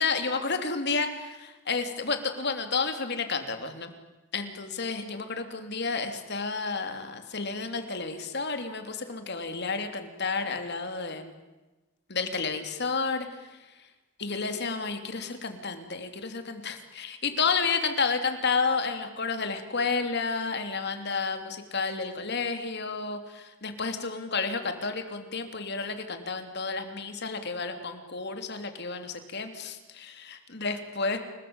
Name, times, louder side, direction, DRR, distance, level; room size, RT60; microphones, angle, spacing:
voice 1, 0.0-3.9 4.3-11.4 12.1-13.6 14.2-31.2, left 4 dB, 55° left, 7 dB, 3.5 m, -31 dB
30.0 x 20.5 x 9.0 m, 1.1 s
head